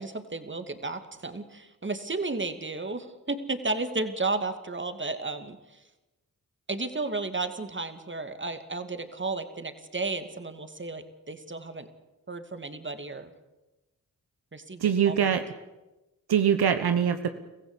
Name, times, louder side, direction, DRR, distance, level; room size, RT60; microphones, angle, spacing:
voice 1, 0.0-5.9 6.7-11.9 12.3-13.3 14.5-15.4, right 3 dB, 30° right, 9 dB, 2.5 m, -33 dB
voice 2, 14.8-15.4 16.3-17.3, right 8 dB, 70° right, 9 dB, 1.3 m, -23 dB
23.5 x 15.5 x 8.3 m, 1.0 s
supercardioid pair, 45°, 40 cm